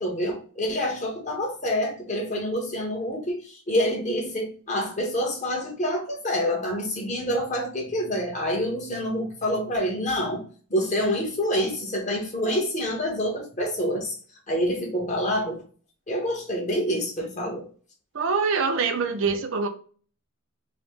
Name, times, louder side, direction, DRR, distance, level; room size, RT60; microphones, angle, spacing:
voice 1, 0.0-10.4 10.7-14.1 14.5-15.6 16.1-17.7, equal, 35° left, 1.2 m, -27 dB
voice 2, 18.1-19.7, right 5 dB, 60° right, 0.6 m, -24 dB
4.0 x 2.2 x 3.5 m
head